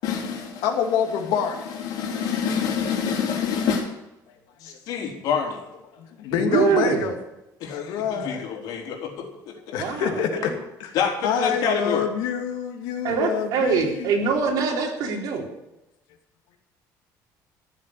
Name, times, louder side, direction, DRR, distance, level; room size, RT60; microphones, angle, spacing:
voice 1, 0.0-0.6 1.8-3.9 4.6-5.6 7.6-9.5 10.9-12.1, left 6 dB, 70° left, 2 dB, 3.8 m, -27 dB
voice 2, 0.6-1.7 4.6-4.8 6.0-7.2 7.7-8.6 9.7-10.5 10.8-10.9 11.2-14.1, left 8 dB, 85° left, 4 dB, 2.5 m, -26 dB
voice 3, 6.3-7.1 9.7-10.5 13.0-15.5, right 5 dB, 60° right, 0 dB, 3.9 m, -24 dB
15.5 x 7.4 x 10.0 m, 0.93 s
cardioid pair, 160°, 7 cm